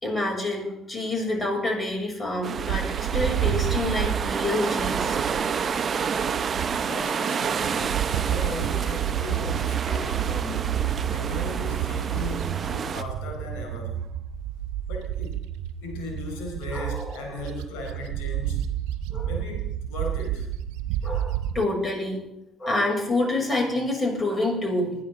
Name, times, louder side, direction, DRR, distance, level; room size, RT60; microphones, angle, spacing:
voice 1, 0.0-2.9 3.1-5.2 16.7-17.4 19.1-19.3 21.0-22.2 22.6-25.0, left 2 dB, 35° left, 0 dB, 7.0 m, -27 dB
sound 1, 2.4-13.0, right 6 dB, 45° right, 0.9 m, -29 dB
Bird, 2.6-7.1 7.4-21.6, right 11 dB, 75° right, 0.6 m, -30 dB
voice 2, 6.8-14.0 14.9-15.4 15.8-18.6 19.2-20.5, left 2 dB, 75° left, 1 dB, 4.3 m, -37 dB
21.0 x 11.0 x 3.9 m, 0.82 s
hypercardioid pair, 50°, 0 cm